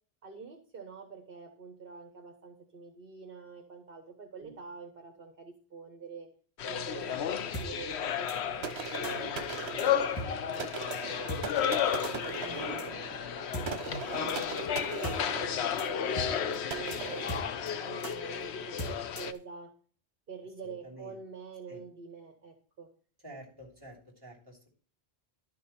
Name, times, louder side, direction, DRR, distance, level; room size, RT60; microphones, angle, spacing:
voice 1, 0.2-6.3 6.6-11.5 12.0-17.3 17.8-19.7 20.3-22.9, right 5 dB, 60° right, 4 dB, 1.5 m, -46 dB
sound 1, 6.6-19.3, left 9 dB, 90° left, 1.0 m, -33 dB
sound 2, 7.5-7.7 8.3-8.4 9.0-9.1 9.8-9.9 10.2-10.3 10.5-10.6 10.9-11.0 11.3-11.4 12.0-12.1 12.8-12.9 13.5-13.7 14.3-14.4 14.7-14.8 15.0-15.2 15.4-15.5 15.8-15.9 16.2-16.3 16.5-16.6 16.9-17.0 17.3-17.7 18.0-18.1 18.8-19.4, right 1 dB, 20° left, 2.1 m, -38 dB
sound 3, 8.6-18.3, right 5 dB, 80° right, 1.3 m, -40 dB
voice 2, 12.4-12.8 20.6-21.2 21.7-21.8 23.2-24.7, equal, 20° right, -2 dB, 3.1 m, -48 dB
11.5 x 6.1 x 4.3 m, 0.42 s
omnidirectional pair, 1.1 m